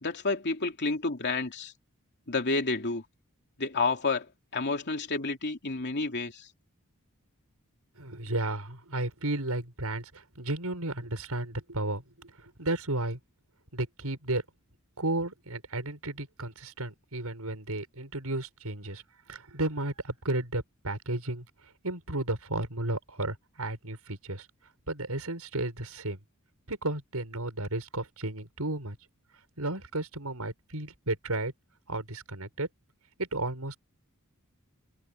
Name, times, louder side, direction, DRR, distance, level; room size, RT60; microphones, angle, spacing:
voice 1, 0.0-1.7 2.3-3.0 3.6-6.5, left 3 dB, 55° left, 2.9 m, -30 dB
voice 2, 8.0-13.2 13.7-14.4 15.0-19.0 19.3-21.5 21.8-24.5 24.9-26.2 26.7-29.0 29.6-31.5 31.9-32.7 33.2-33.8, right 2 dB, 85° right, 6.5 m, -33 dB
head